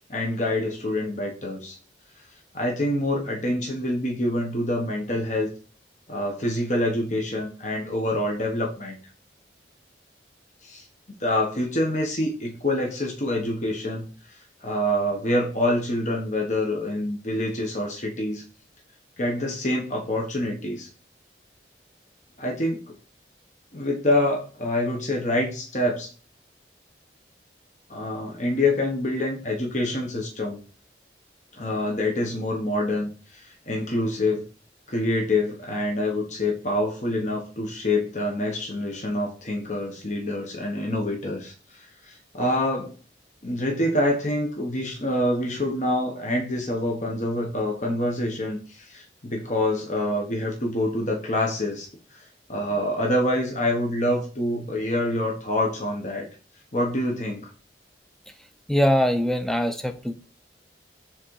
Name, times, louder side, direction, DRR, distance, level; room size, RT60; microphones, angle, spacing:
voice 1, 0.1-1.8 2.5-5.5 6.1-9.0 10.6-10.9 11.2-18.4 19.2-20.9 22.4-22.8 23.7-26.1 27.9-30.6 31.5-34.4 34.9-42.9 43.4-56.3 56.7-57.5, left 1 dB, 45° left, 0 dB, 1.2 m, -26 dB
voice 2, 58.7-60.1, equal, ahead, 8 dB, 0.6 m, -22 dB
7.7 x 3.7 x 4.7 m, 0.38 s
head